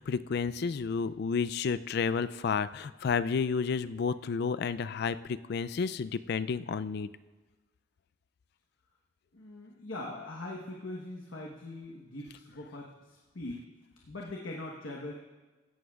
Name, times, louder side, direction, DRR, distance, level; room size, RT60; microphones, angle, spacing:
voice 1, 0.0-7.1, left 5 dB, 55° left, 15 dB, 0.3 m, -31 dB
voice 2, 9.3-13.7 14.1-15.1, left 2 dB, 90° left, -1 dB, 1.2 m, -41 dB
16.0 x 11.0 x 2.4 m, 1.3 s
head